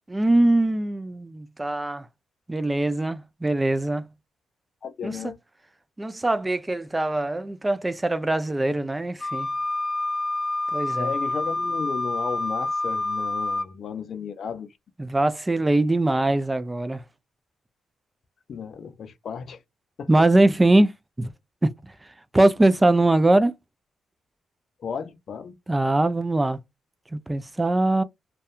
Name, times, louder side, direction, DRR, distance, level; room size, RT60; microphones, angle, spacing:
voice 1, 0.1-2.1 2.5-4.1 5.0-5.2 6.0-9.5 10.7-11.1 15.0-17.0 20.1-20.9 21.2-21.3 21.6-21.7 22.3-23.5 25.7-26.6 27.1-28.0, right 2 dB, 20° right, 0.4 m, -22 dB
voice 2, 4.8-5.4 11.0-14.7 18.5-19.6 20.0-20.3 24.8-25.5, left 6 dB, 65° left, 0.5 m, -34 dB
Wind instrument woodwind instrument, 9.2-13.7, left 2 dB, 25° left, 0.8 m, -27 dB
2.6 x 2.2 x 2.3 m
cardioid pair, 70°, 0 cm